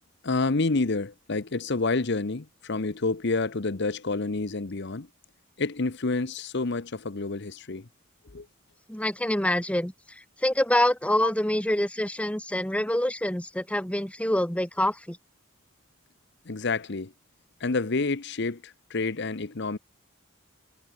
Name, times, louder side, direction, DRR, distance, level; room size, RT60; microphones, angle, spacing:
voice 1, 0.2-5.1 5.6-7.9 8.3-8.5 11.2-11.3 16.5-17.1 17.6-19.8, left 3 dB, 55° left, 0.9 m, -28 dB
voice 2, 8.9-15.2, left 1 dB, 5° left, 1.6 m, -26 dB
head